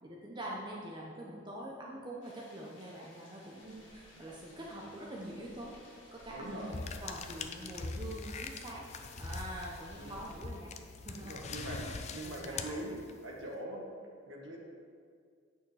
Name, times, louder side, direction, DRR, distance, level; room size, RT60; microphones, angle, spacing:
voice 1, 0.0-5.8 6.1-8.9 9.2-10.7 11.1-12.8, right 1 dB, 20° right, -3 dB, 0.8 m, -45 dB
sound 1, 2.2-10.4, left 1 dB, 60° left, 2.2 m, -59 dB
sound 2, 3.5-12.7, equal, 5° left, 2.1 m, -59 dB
voice 2, 6.3-6.7 9.9-10.2 11.2-13.0 13.2-13.8 14.3-14.6, right 1 dB, 65° right, -2 dB, 1.6 m, -42 dB
sound 3, 6.7-13.4, left 4 dB, 35° left, 0.4 m, -43 dB
8.7 x 6.5 x 4.8 m, 2.1 s
head